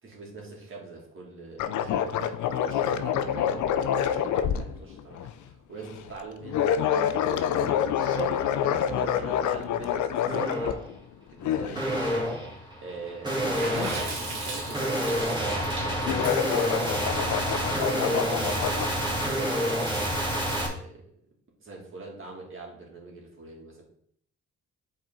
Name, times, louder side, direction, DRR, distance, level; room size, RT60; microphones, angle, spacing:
voice 1, 0.0-3.7 4.0-10.8 11.3-12.0 12.4-16.5 17.6-19.9 20.2-21.1 21.6-23.8, right 3 dB, 45° right, -2 dB, 2.5 m, -43 dB
sound 1, 1.6-5.3 5.9-6.1 6.4-11.0 11.4-11.9 13.7-13.9 15.2-15.5 15.7-18.9, left 9 dB, 75° left, 0.6 m, -27 dB
sound 2, 6.9-7.1 7.5-8.2 8.8-9.2 10.3-10.9 11.7-20.7, equal, 15° right, 2.0 m, -29 dB
Water / Splash splatter, 13.6-18.0, right 3 dB, 85° right, 2.0 m, -38 dB
7.8 x 4.4 x 3.8 m, 0.64 s
cardioid pair, 90°, 30 cm